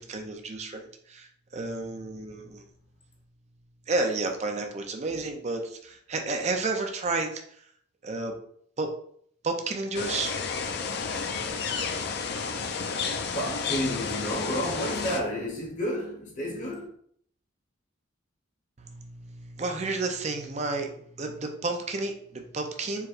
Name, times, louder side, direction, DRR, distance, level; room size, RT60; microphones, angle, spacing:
voice 1, 0.0-2.6 3.9-7.6 8.0-8.3 8.8-8.9 9.4-10.4 18.8-23.1, right 3 dB, 35° right, 0.5 m, -31 dB
sound 1, 9.9-15.2, left 5 dB, 55° left, 0.5 m, -31 dB
voice 2, 13.3-16.8, equal, 40° left, 1.3 m, -31 dB
4.6 x 3.1 x 2.5 m
head